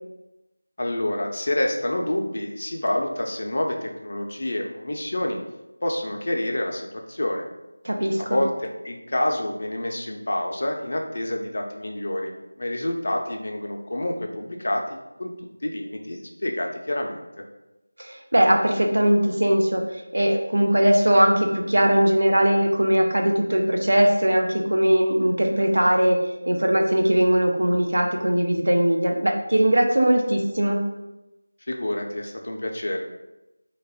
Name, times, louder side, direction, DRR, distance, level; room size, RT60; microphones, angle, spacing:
voice 1, 0.8-5.4 5.8-7.5 8.2-14.8 15.2-15.3 15.6-17.2 31.7-33.0, left 1 dB, 50° left, 2 dB, 0.5 m, -28 dB
voice 2, 7.8-8.4 18.0-19.8 20.1-26.2 26.5-30.8, right 1 dB, 70° right, 3 dB, 0.6 m, -20 dB
3.2 x 2.3 x 3.4 m, 0.98 s
figure-of-eight pair, 170°, 0 cm